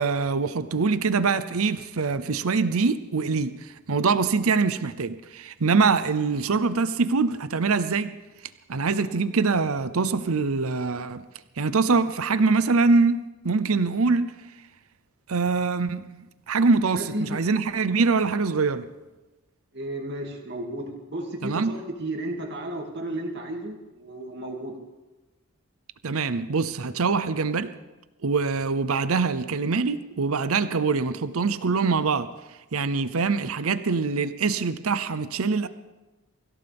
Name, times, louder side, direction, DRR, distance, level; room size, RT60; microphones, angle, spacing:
voice 1, 0.0-8.1 8.7-11.2 11.6-14.3 15.3-18.9 21.4-21.8 26.0-27.7 28.2-32.3 32.7-35.7, right 4 dB, 80° right, 13 dB, 0.7 m, -24 dB
voice 2, 16.9-17.4 19.7-24.8, right 1 dB, 50° right, 1 dB, 2.5 m, -33 dB
24.5 x 16.0 x 3.6 m, 1.1 s
head